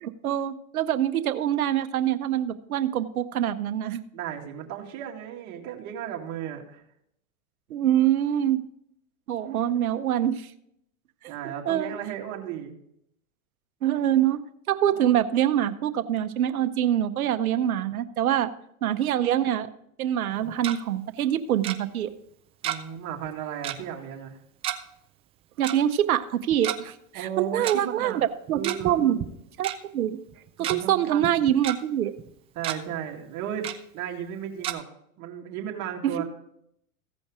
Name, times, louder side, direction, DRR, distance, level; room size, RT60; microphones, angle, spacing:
voice 1, 0.0-4.0 7.7-8.6 9.3-10.5 11.4-11.9 12.4-12.5 13.8-14.4 14.7-18.5 18.8-19.7 20.0-22.1 25.6-29.2 29.6-30.2 30.6-32.1 36.0-36.2, right 11 dB, 85° right, 10 dB, 0.8 m, -25 dB
voice 2, 4.1-6.8 11.3-12.8 22.6-24.4 27.1-28.2 28.5-29.2 30.6-31.5 32.6-33.7 33.9-34.8 35.2-36.2, right 9 dB, 40° right, 0 dB, 2.1 m, -35 dB
Tick-tock, 20.3-20.8 21.6-21.8 22.6-23.0 23.2-23.3 23.6-23.8 24.6-24.8 25.6-25.8 26.5-26.8 27.6-27.7 28.5-28.9 29.2-29.3 29.6-29.8 30.3-30.8 31.2-31.8 32.2-32.3 32.6-32.8 33.6-33.8 34.6-34.7, right 12 dB, 15° right, 0.3 m, -31 dB
15.5 x 5.3 x 4.8 m, 0.74 s
hypercardioid pair, 115°, 42 cm